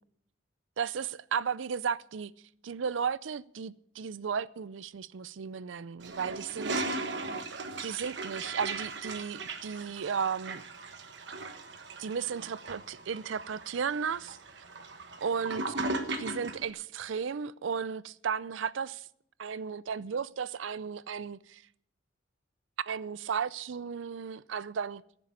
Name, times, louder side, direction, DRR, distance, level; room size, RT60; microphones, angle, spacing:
voice 1, 0.8-2.3 2.6-7.1 7.8-10.6 12.0-14.6 15.2-15.7 16.2-19.1 19.4-21.6 22.8-25.0, right 6 dB, 80° right, 0.5 m, -34 dB
Toilet flush, 6.0-16.7, right 3 dB, 65° right, 1.2 m, -38 dB
14.5 x 6.9 x 8.3 m
head